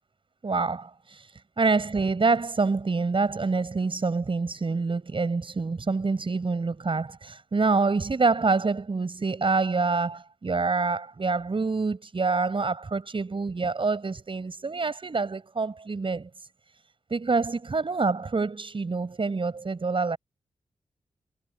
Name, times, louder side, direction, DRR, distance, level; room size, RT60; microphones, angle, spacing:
voice 1, 0.4-16.5 17.1-20.2, right 4 dB, 50° right, 6.8 m, -26 dB
cardioid pair, 55°, 12 cm